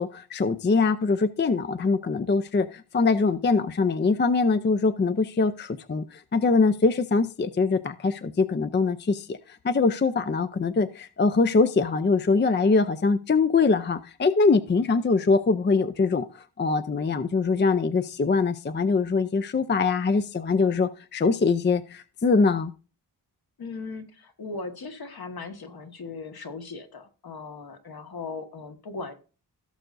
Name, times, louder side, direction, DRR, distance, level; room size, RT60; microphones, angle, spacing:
voice 1, 0.0-16.3 16.6-22.7, left 4 dB, 25° left, 12 dB, 0.5 m, -23 dB
voice 2, 23.6-29.1, left 4 dB, 65° left, 5 dB, 1.6 m, -38 dB
17.0 x 6.6 x 2.6 m, 0.35 s
wide cardioid pair, 125°, 40 cm